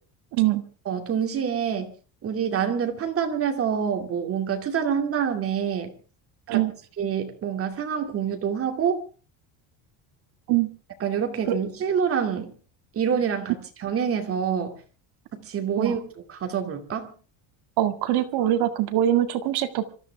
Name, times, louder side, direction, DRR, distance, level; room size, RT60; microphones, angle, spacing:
voice 1, 0.3-0.6 6.5-6.7 10.5-10.7 11.5-11.6 15.8-15.9 17.8-19.9, right 12 dB, 60° right, 7 dB, 2.0 m, -23 dB
voice 2, 0.9-1.9 2.2-5.9 6.5-6.6 7.0-9.0 11.0-12.5 12.9-13.5 13.8-14.8 15.3-16.0 16.3-17.1, right 7 dB, 30° right, 4 dB, 2.5 m, -26 dB
26.0 x 14.0 x 3.5 m, 0.38 s
cardioid pair, 170°, 44 cm